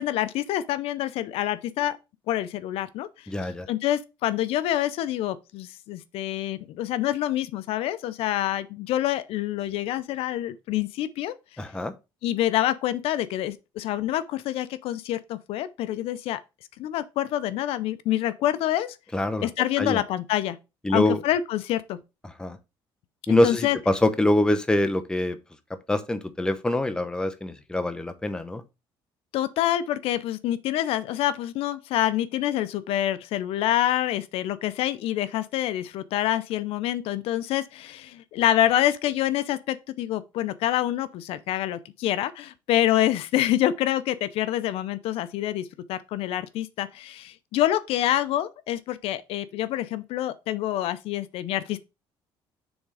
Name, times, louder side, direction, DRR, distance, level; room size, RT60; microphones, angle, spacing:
voice 1, 0.0-2.0 2.3-3.1 3.7-11.3 12.2-16.4 16.8-19.0 19.4-20.6 20.9-22.0 23.3-23.8 29.3-51.8, left 13 dB, 75° left, 0.6 m, -26 dB
voice 2, 3.3-3.7 11.6-11.9 19.1-19.5 19.8-20.0 20.8-21.2 22.2-22.6 23.3-25.4 25.9-28.6, left 1 dB, 10° left, 0.8 m, -24 dB
7.1 x 3.6 x 4.9 m
cardioid pair, 120°, 10 cm